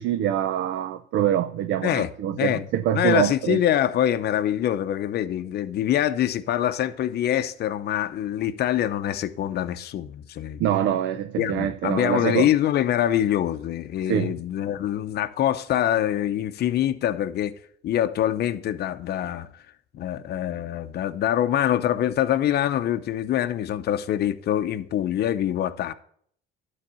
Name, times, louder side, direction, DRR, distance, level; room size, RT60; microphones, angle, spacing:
voice 1, 0.0-3.6 10.6-12.5 14.1-14.3, right 11 dB, 65° right, 0.7 m, -25 dB
voice 2, 2.3-2.7 2.9-10.6 11.4-17.6 17.8-19.5 19.9-25.9, left 11 dB, 55° left, 0.7 m, -24 dB
11.5 x 4.2 x 6.9 m
supercardioid pair, 90°, 20 cm